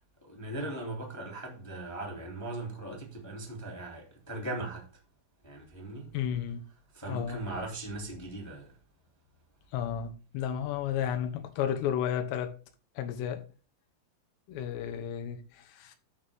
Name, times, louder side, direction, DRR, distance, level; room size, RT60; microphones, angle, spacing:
voice 1, 0.2-4.8 5.4-6.1 6.9-8.7, right 2 dB, 5° left, 1.4 m, -39 dB
voice 2, 6.1-6.6 7.1-7.4 9.7-12.5 13.0-13.4 14.5-16.0, left 9 dB, 75° left, 3.2 m, -32 dB
12.5 x 4.4 x 3.5 m
omnidirectional pair, 5.3 m